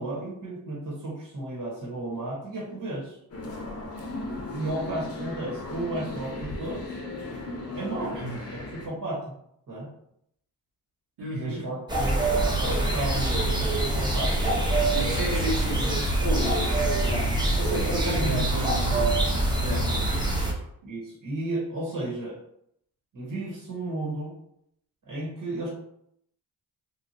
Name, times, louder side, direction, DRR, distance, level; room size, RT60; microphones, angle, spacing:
voice 1, 0.0-3.2 4.5-7.0 7.7-8.2 8.5-9.3 9.7-9.9 11.3-12.3 12.6-14.9 16.4-16.5 18.0-18.4 20.8-22.4 23.1-24.3 25.1-25.7, right 1 dB, 50° right, -5 dB, 1.3 m, -33 dB
sound 1, 3.3-8.9, left 2 dB, 35° left, 0.8 m, -36 dB
voice 2, 11.2-11.7 14.9-19.3 19.6-20.5, equal, 85° right, -12 dB, 1.4 m, -32 dB
sound 2, 11.9-20.5, right 2 dB, 10° right, 0.8 m, -25 dB
2.8 x 2.5 x 2.7 m, 0.73 s
cardioid pair, 55°, 40 cm